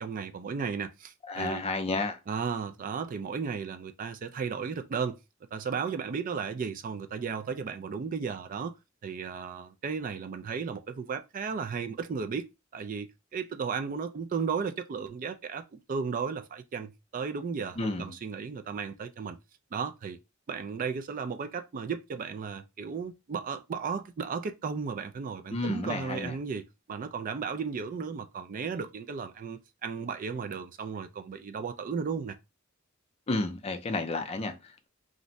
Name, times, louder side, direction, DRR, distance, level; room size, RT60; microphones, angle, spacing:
voice 1, 0.0-1.6 2.3-5.2 5.5-8.7 9.0-12.5 12.7-19.4 19.7-20.2 20.5-32.4, right 5 dB, 40° right, 0.3 m, -34 dB
voice 2, 1.3-2.2 17.8-18.1 25.5-26.4 33.3-34.9, left 2 dB, 30° left, 0.5 m, -31 dB
2.5 x 2.1 x 3.8 m
head